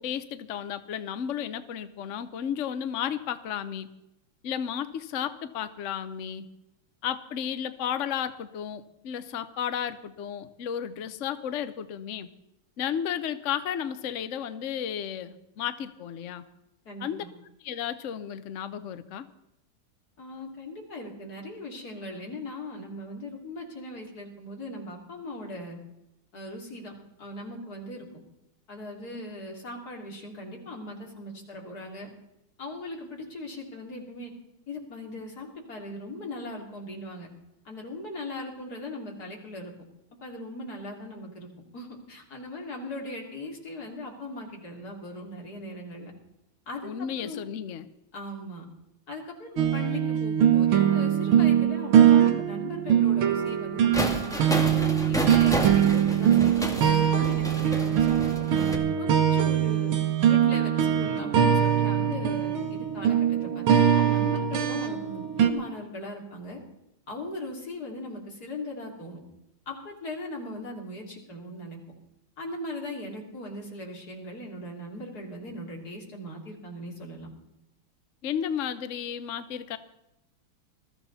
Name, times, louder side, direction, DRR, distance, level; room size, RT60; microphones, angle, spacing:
voice 1, 0.0-3.9 4.4-6.5 7.0-12.3 12.8-16.4 17.0-17.2 17.6-19.3 46.8-47.9 78.2-79.8, left 9 dB, 70° left, 11 dB, 0.7 m, -33 dB
voice 2, 16.9-17.3 20.2-25.8 26.3-26.9 27.2-28.1 28.7-32.1 32.6-34.3 34.7-37.3 37.7-39.7 40.2-46.1 46.7-47.4 48.1-48.6 49.1-54.5 55.1-58.4 59.0-59.9 60.2-66.6 67.1-69.2 69.7-71.8 72.4-77.3, left 1 dB, 45° left, 0 dB, 3.7 m, -39 dB
sound 1, 49.6-65.5, right 9 dB, 75° right, 2.0 m, -22 dB
sound 2, 53.9-58.8, equal, ahead, 1.7 m, -31 dB
21.0 x 14.0 x 4.1 m, 0.86 s
omnidirectional pair, 2.4 m